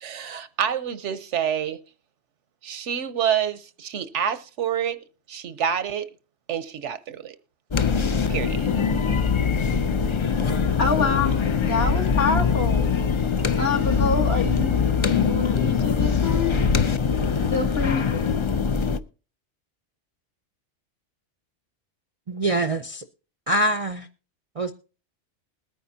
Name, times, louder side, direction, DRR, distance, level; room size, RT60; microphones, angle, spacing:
voice 1, 0.0-1.8 2.6-5.0 5.3-6.1 6.5-7.4 8.3-8.7, right 8 dB, 80° right, 1.1 m, -27 dB
sound 1, 7.7-19.0, left 6 dB, 40° left, 0.4 m, -22 dB
voice 2, 10.8-12.9 13.6-16.5 17.5-18.0, left 4 dB, 60° left, 1.8 m, -26 dB
voice 3, 22.3-23.0 23.5-24.1 24.6-24.7, right 1 dB, 40° right, 0.5 m, -24 dB
21.0 x 9.4 x 2.7 m
omnidirectional pair, 1.2 m